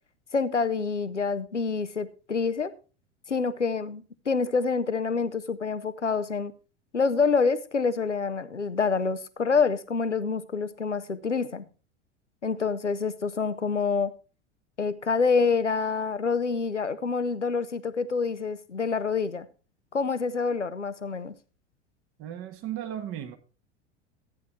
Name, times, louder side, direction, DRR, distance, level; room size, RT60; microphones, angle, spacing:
voice 1, 0.3-2.7 3.3-6.5 6.9-11.6 12.4-14.1 14.8-19.5 19.9-21.3, left 5 dB, 85° left, 0.9 m, -27 dB
voice 2, 22.2-23.4, right 11 dB, 40° right, 1.6 m, -35 dB
13.5 x 9.4 x 3.2 m
figure-of-eight pair, 85°, 35 cm